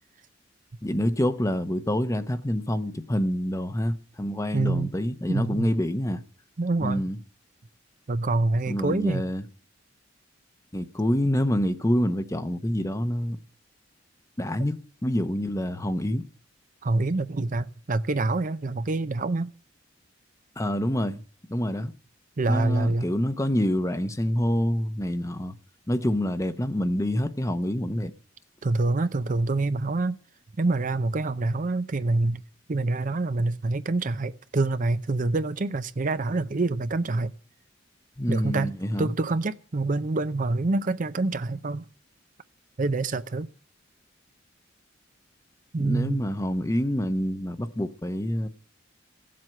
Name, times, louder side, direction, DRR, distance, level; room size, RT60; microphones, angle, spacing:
voice 1, 0.8-6.2 6.8-7.2 8.7-9.5 10.7-13.4 14.4-16.2 20.6-21.2 21.5-21.9 22.5-25.5 25.9-28.1 38.2-39.1 45.8-48.5, equal, 15° left, 0.8 m, -27 dB
voice 2, 4.5-4.9 5.3-5.7 6.6-7.0 8.1-9.2 16.8-19.5 22.4-23.1 28.6-30.2 30.6-32.4 32.7-37.3 38.3-38.7 39.0-41.9 42.8-43.5 45.7-46.2, right 2 dB, 45° right, 0.6 m, -26 dB
15.5 x 7.7 x 7.7 m
head